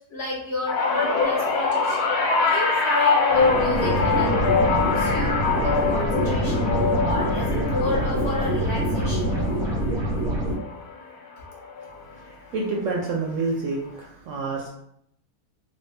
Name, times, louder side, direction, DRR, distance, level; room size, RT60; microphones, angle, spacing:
voice 1, 0.1-2.0 2.4-4.4 4.9-6.7 7.0-9.3, left 2 dB, 50° left, -4 dB, 1.0 m, -31 dB
sound 1, 0.7-11.1 11.5-11.9 13.0-13.1, left 4 dB, 75° left, 1.2 m, -24 dB
sound 2, 3.3-10.5, right 1 dB, 20° right, 0.7 m, -25 dB
voice 2, 12.1-14.7, right 3 dB, 65° right, -1 dB, 0.8 m, -28 dB
3.4 x 2.2 x 3.3 m, 0.71 s
omnidirectional pair, 1.6 m